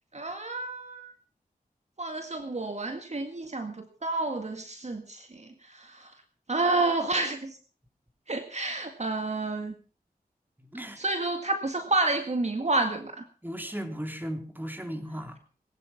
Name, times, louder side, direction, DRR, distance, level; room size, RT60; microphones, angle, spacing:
voice 1, 0.1-1.1 2.0-6.1 6.5-7.6 8.3-9.7 11.0-13.2, right 2 dB, 45° right, 7 dB, 1.9 m, -30 dB
voice 2, 10.6-11.0 13.4-15.4, equal, 10° right, 5 dB, 3.8 m, -36 dB
20.5 x 11.0 x 5.8 m, 0.39 s
cardioid pair, 50°, 16 cm